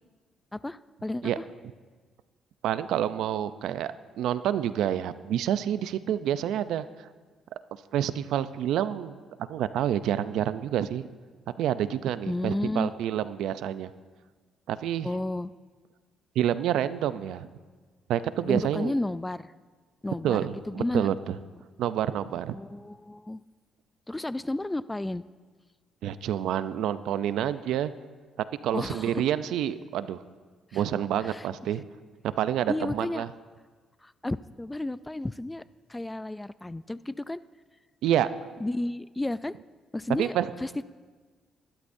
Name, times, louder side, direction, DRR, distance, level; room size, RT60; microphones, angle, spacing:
voice 1, 0.5-1.4 12.3-12.9 15.0-15.5 18.4-19.5 20.0-21.1 22.5-23.4 24.1-25.2 28.7-29.2 30.7-30.8 31.2-31.8 32.7-33.3 34.0-35.6 35.9-37.4 38.6-39.6 39.9-40.8, left 1 dB, 15° left, 16 dB, 0.3 m, -32 dB
voice 2, 2.6-6.8 7.9-9.1 9.5-11.1 11.6-13.9 14.7-15.1 16.4-17.5 18.1-18.9 20.2-21.1 21.8-22.6 26.0-27.9 28.6-30.2 30.7-31.8 32.2-33.3 38.0-38.3 40.2-40.5, right 10 dB, 85° right, 14 dB, 0.5 m, -28 dB
22.0 x 12.0 x 2.7 m, 1.4 s
cardioid pair, 90°, 0 cm